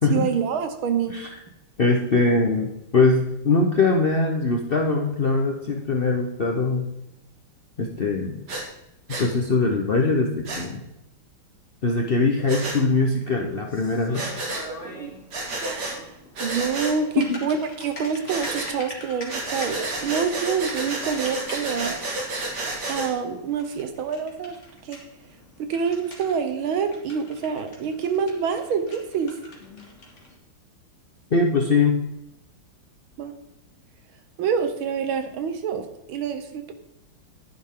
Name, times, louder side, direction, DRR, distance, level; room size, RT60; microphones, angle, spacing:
voice 1, 0.1-1.2 14.6-15.2 15.6-16.0 16.4-22.0 22.9-24.6 24.8-25.0 25.6-29.4 33.2-33.3 34.4-36.7, right 6 dB, 75° right, 8 dB, 1.8 m, -27 dB
voice 2, 1.8-6.9 7.8-8.4 9.2-10.8 11.8-14.3 17.2-17.4 31.3-32.0, left 3 dB, 70° left, 2 dB, 0.5 m, -22 dB
Breathing, 8.5-8.6 9.1-9.3 10.4-10.6 12.5-12.8 14.1-14.7 15.3-16.0 16.3-17.0 18.3-18.7 19.3-23.1, right 2 dB, 50° right, 2.4 m, -30 dB
Typing, 12.3-30.4, left 1 dB, 35° left, 2.3 m, -44 dB
10.5 x 10.5 x 3.7 m, 0.87 s
omnidirectional pair, 2.3 m